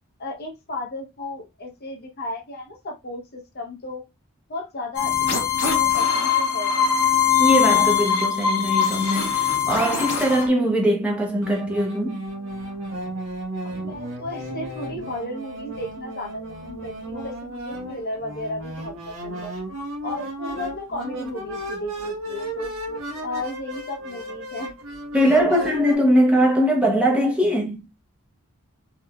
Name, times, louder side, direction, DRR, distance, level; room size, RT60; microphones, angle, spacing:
voice 1, 0.2-4.0 4.5-6.8 13.6-19.5 20.0-22.7 23.2-24.7 25.2-25.6, left 1 dB, 45° left, 0.8 m, -34 dB
sound 1, 4.9-10.5, left 7 dB, 90° left, 1.2 m, -21 dB
voice 2, 7.4-12.2 25.1-27.9, equal, 5° right, 0.8 m, -21 dB
sound 2, 11.4-26.0, right 1 dB, 65° right, 1.1 m, -34 dB
3.7 x 3.2 x 2.3 m
head